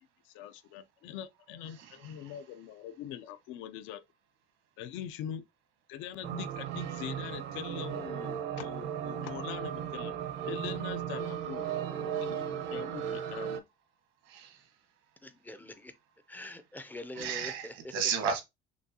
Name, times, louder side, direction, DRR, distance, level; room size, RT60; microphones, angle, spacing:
voice 1, 0.3-4.0 4.8-5.4 5.9-10.1 10.5-11.7 12.0-13.6, left 10 dB, 80° left, 0.5 m, -42 dB
voice 2, 1.8-2.3 14.3-14.6 17.1-18.4, right 7 dB, 80° right, 1.3 m, -34 dB
sound 1, 6.2-13.6, right 9 dB, 65° right, 0.7 m, -36 dB
voice 3, 15.2-15.9 16.3-17.7, left 2 dB, 10° left, 0.4 m, -44 dB
6.1 x 2.3 x 2.8 m
cardioid pair, 155°, 20 cm